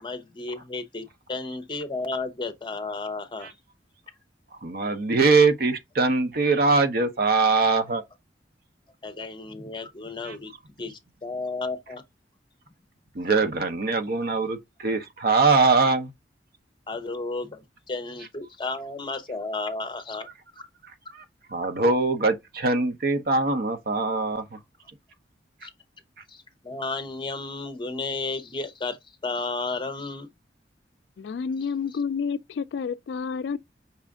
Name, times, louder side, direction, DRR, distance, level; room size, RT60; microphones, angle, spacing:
voice 1, 0.0-3.5 9.0-10.5 10.8-12.0 16.9-17.6 17.9-20.3 25.6-25.7 26.3-29.0 29.2-30.3, left 3 dB, 25° left, 0.7 m, -33 dB
voice 2, 4.6-8.0 10.2-10.4 13.1-16.1 21.1-21.2 21.5-24.4, right 3 dB, 55° right, 0.8 m, -22 dB
voice 3, 31.2-33.6, left 6 dB, 75° left, 0.3 m, -29 dB
5.6 x 2.4 x 3.6 m
head